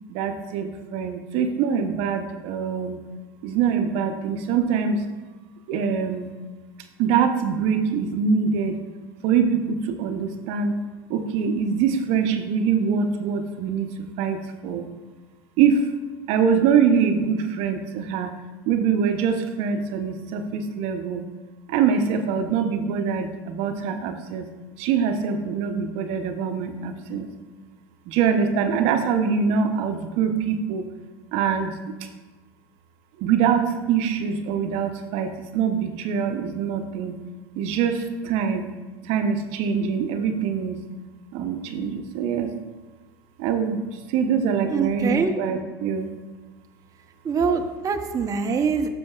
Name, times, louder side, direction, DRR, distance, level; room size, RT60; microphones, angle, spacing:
voice 1, 0.1-3.0 3.4-5.0 5.7-6.3 7.0-8.8 9.2-10.8 11.1-14.8 15.6-15.9 16.3-18.3 18.7-21.2 21.7-24.5 24.8-27.3 28.1-30.9 31.3-31.8 33.2-37.1 37.6-38.7 39.0-40.8 41.3-42.5 43.4-46.1, right 6 dB, 55° right, 6 dB, 0.8 m, -24 dB
voice 2, 44.7-45.3 47.2-48.9, right 5 dB, 25° right, 5 dB, 0.7 m, -24 dB
12.5 x 6.1 x 2.4 m, 1.3 s
hypercardioid pair, 85°, 13 cm